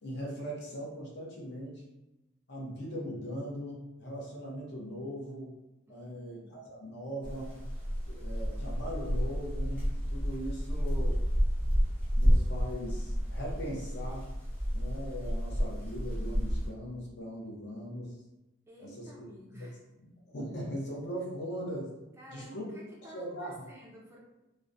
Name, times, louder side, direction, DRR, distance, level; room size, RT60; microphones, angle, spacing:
voice 1, 0.0-1.8 2.5-5.5 5.9-7.7 8.1-11.2 12.2-14.3 14.7-18.2 18.8-19.1 19.5-19.7 20.0-22.0 22.3-22.8 23.1-23.5, equal, 60° left, -3 dB, 0.6 m, -40 dB
voice 2, 5.9-6.5 18.7-19.8 22.2-24.2, equal, 15° right, -3 dB, 0.3 m, -52 dB
sound 1, 7.2-16.7, equal, 10° left, 0.8 m, -30 dB
2.3 x 2.0 x 2.5 m, 0.97 s
head